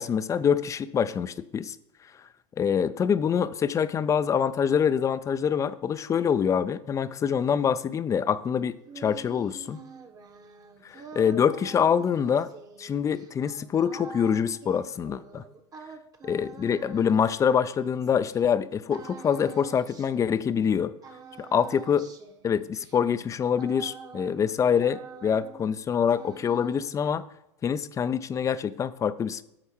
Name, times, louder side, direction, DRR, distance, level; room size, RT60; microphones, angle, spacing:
voice 1, 0.0-1.8 2.6-9.8 10.8-12.5 12.8-15.4 16.2-20.9 21.4-22.1 22.4-27.2 27.6-29.4, left 7 dB, 20° left, 15 dB, 0.4 m, -25 dB
sound 1, 8.6-18.4 18.9-20.8 21.0-24.5 24.8-25.8 26.1-27.1, right 4 dB, 25° right, 1.0 m, -46 dB
8.6 x 4.4 x 6.1 m, 0.82 s
hypercardioid pair, 90°, 16 cm